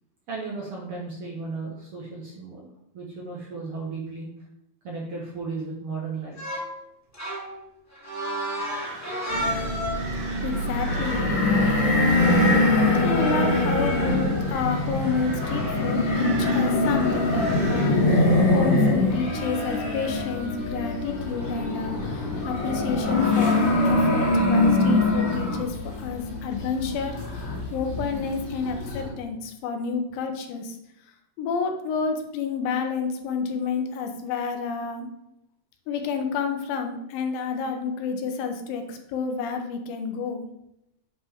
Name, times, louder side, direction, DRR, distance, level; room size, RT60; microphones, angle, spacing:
voice 1, 0.3-2.7 2.9-4.3 4.8-6.5, right 4 dB, 60° right, -3 dB, 1.5 m, -35 dB
sound 1, 6.4-6.7 7.1-10.2 12.3-12.5 13.8-14.1, equal, 20° left, 0.4 m, -31 dB
sound 2, 8.6-18.9, right 3 dB, 80° right, 0.9 m, -41 dB
sound 3, 9.3-29.1, left 2 dB, 55° left, 3.2 m, -23 dB
voice 2, 10.4-11.3 13.0-30.8 31.4-35.1 35.9-40.5, left 5 dB, 85° left, 5 dB, 2.7 m, -30 dB
8.6 x 5.2 x 3.5 m, 0.83 s
omnidirectional pair, 4.0 m